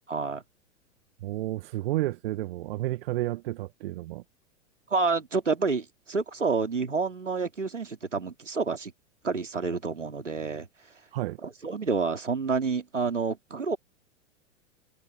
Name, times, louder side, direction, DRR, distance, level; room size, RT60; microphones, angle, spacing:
voice 1, 0.1-0.4 4.9-8.9 9.2-10.7 11.4-13.8, right 4 dB, 80° right, 2.9 m, -29 dB
voice 2, 1.2-4.2 11.1-11.4, right 17 dB, 50° right, 1.6 m, -31 dB
figure-of-eight pair, 95°, 36 cm